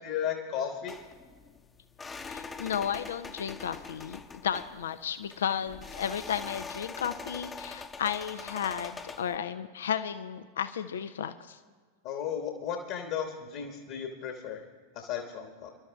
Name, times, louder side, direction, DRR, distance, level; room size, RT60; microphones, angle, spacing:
voice 1, 0.0-1.0 12.0-14.6 14.9-15.7, left 8 dB, 45° left, 4 dB, 1.4 m, -34 dB
sound 1, 0.9-9.4, left 4 dB, 15° left, 0.8 m, -43 dB
voice 2, 2.2-11.6, left 8 dB, 65° left, 11 dB, 0.5 m, -33 dB
27.5 x 12.5 x 2.4 m, 1.6 s
figure-of-eight pair, 90°, 0 cm